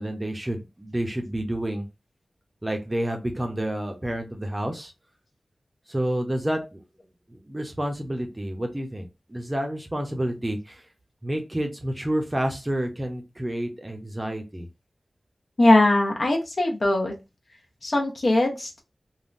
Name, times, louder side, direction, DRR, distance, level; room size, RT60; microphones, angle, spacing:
voice 1, 0.0-1.9 2.6-4.9 5.9-6.8 7.3-10.8 11.2-14.7, right 1 dB, 20° right, 4 dB, 0.6 m, -29 dB
voice 2, 15.6-17.1 17.8-18.8, left 1 dB, 55° left, 1 dB, 0.8 m, -20 dB
3.5 x 2.1 x 2.5 m, 0.26 s
wide cardioid pair, 90°, 0 cm